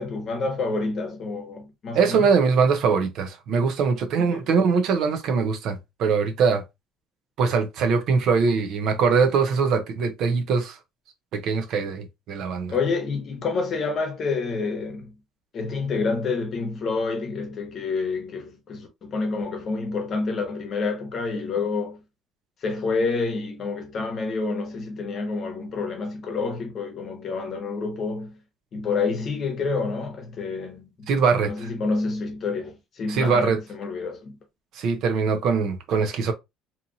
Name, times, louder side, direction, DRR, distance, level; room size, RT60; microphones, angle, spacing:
voice 1, 0.0-2.3 4.2-4.5 12.7-15.1 15.5-22.0 22.6-28.4 28.7-31.1 31.5-34.3, left 4 dB, 40° left, 0.9 m, -28 dB
voice 2, 1.9-6.6 7.4-10.8 11.3-12.7 31.1-31.7 33.1-33.6 34.7-36.3, right 5 dB, 60° right, 0.6 m, -22 dB
2.8 x 2.5 x 2.6 m
cardioid pair, 150°, 0 cm